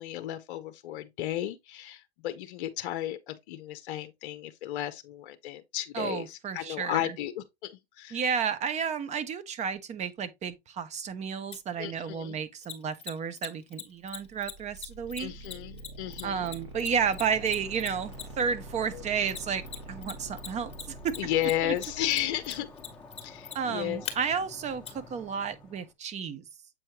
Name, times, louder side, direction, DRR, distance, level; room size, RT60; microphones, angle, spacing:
voice 1, 0.0-8.2 11.8-12.4 15.2-16.5 18.9-19.0 21.2-22.7 23.2-24.1, left 13 dB, 55° left, 0.7 m, -34 dB
voice 2, 5.9-7.0 8.1-15.3 16.2-20.7 21.0-21.2 21.6-21.7 23.5-26.4, right 7 dB, 20° right, 0.8 m, -32 dB
Mechanisms, 11.5-11.6 12.6-18.5 19.3-20.1 20.4-24.1 24.9-25.0, left 8 dB, 20° left, 1.4 m, -39 dB
sound 1, 14.1-22.9, right 2 dB, 65° right, 3.2 m, -46 dB
sound 2, 17.0-25.9, left 3 dB, 5° left, 1.2 m, -51 dB
7.7 x 4.4 x 2.9 m
hypercardioid pair, 115°, 32 cm